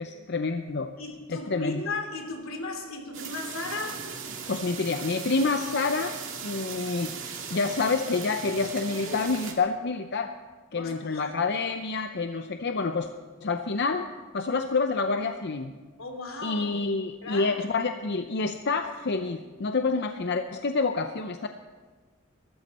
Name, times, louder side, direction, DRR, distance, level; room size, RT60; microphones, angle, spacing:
voice 1, 0.0-0.9 1.3-1.8 4.5-10.3 10.7-13.1 13.4-14.1 14.3-15.7 16.4-21.5, left 4 dB, 55° left, 7 dB, 0.7 m, -28 dB
voice 2, 1.0-4.0 10.7-11.4 16.0-16.9 17.2-17.6, left 2 dB, 85° left, 3 dB, 2.9 m, -36 dB
sound 1, 3.1-9.5, right 6 dB, 65° right, 2.3 m, -38 dB
21.5 x 13.5 x 4.3 m, 1.4 s
head